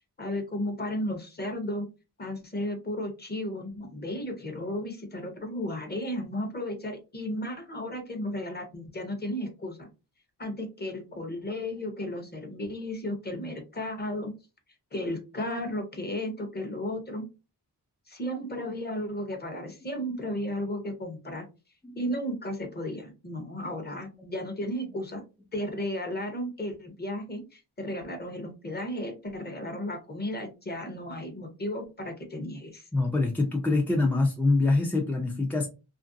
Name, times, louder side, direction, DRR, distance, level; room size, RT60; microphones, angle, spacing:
voice 1, 0.2-1.9 2.2-9.9 10.4-14.3 14.9-17.2 18.1-21.4 22.0-25.2 25.5-32.9, left 1 dB, 25° left, 5 dB, 0.7 m, -34 dB
voice 2, 32.9-35.7, left 3 dB, 5° left, 0 dB, 0.3 m, -25 dB
2.9 x 2.5 x 2.6 m, 0.29 s
wide cardioid pair, 150°, 40 cm